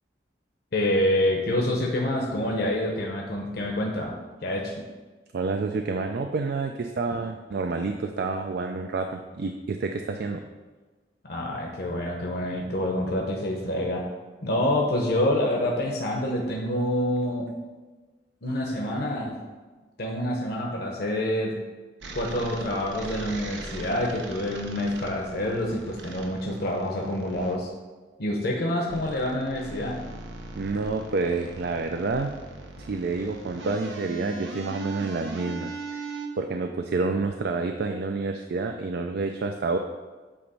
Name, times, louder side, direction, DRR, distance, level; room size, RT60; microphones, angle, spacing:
voice 1, 0.7-4.1 4.4-4.8 11.2-14.1 14.4-17.5 18.4-19.4 20.0-21.6 22.1-27.7 28.2-30.0, left 1 dB, 60° left, -1 dB, 0.8 m, -27 dB
voice 2, 5.3-10.4 30.5-32.3 32.8-36.0 36.4-39.8, right 3 dB, 60° right, 5 dB, 0.4 m, -29 dB
sound 1, 22.0-27.6 28.9-36.3, right 2 dB, 85° right, 0.8 m, -39 dB
8.5 x 3.0 x 5.4 m, 1.3 s
head